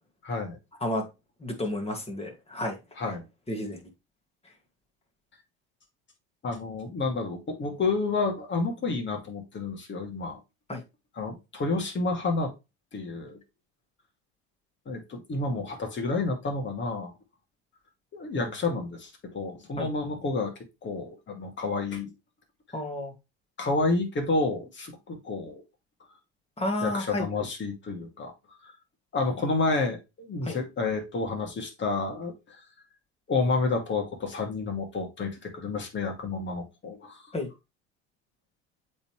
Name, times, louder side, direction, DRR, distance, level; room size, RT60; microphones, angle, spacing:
voice 1, 0.2-0.6 3.0-3.2 6.4-10.4 11.2-12.5 12.9-13.4 14.9-17.1 18.1-20.5 20.8-22.1 23.6-25.6 26.8-28.3 28.6-28.7 29.1-32.6 33.3-37.3, left 3 dB, 35° left, 3 dB, 2.5 m, -30 dB
voice 2, 1.4-2.8 3.5-3.8 10.7-10.8 18.3-18.5 19.8-19.9 22.7-23.1 26.6-27.3 30.4-30.6 37.3-37.5, left 1 dB, 20° left, 3 dB, 2.3 m, -31 dB
7.8 x 4.0 x 3.3 m, 0.25 s
hypercardioid pair, 75°, 33 cm